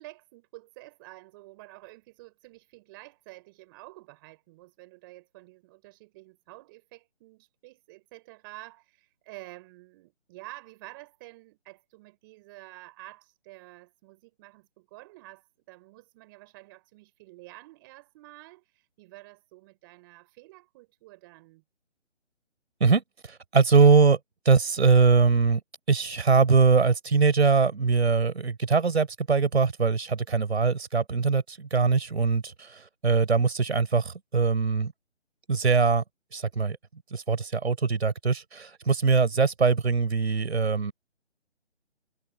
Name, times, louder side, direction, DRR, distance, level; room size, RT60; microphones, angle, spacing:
voice 1, 0.0-21.6 39.2-39.4, right 21 dB, 20° right, 7.4 m, -49 dB
voice 2, 22.8-24.2 24.4-25.6 25.9-34.9 35.5-36.0 36.3-36.8 37.1-40.9, right 5 dB, 65° right, 5.1 m, -22 dB
hypercardioid pair, 165°, 36 cm